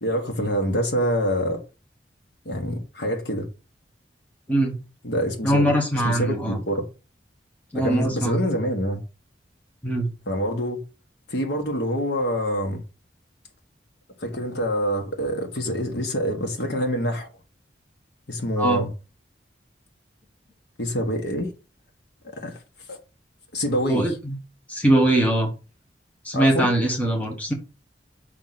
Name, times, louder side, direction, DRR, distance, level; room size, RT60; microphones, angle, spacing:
voice 1, 0.0-1.6 2.4-3.5 5.0-6.8 7.7-9.0 10.3-10.8 11.3-12.8 14.2-17.3 18.3-18.9 20.8-21.5 22.2-22.6 22.9-23.0 23.5-24.1 26.3-26.7, equal, 75° left, 1.6 m, -26 dB
voice 2, 5.4-6.6 7.7-8.4 9.8-10.1 18.6-18.8 23.9-24.4 24.7-25.5 26.2-27.5, right 1 dB, 10° left, 1.4 m, -22 dB
6.0 x 4.4 x 4.1 m
head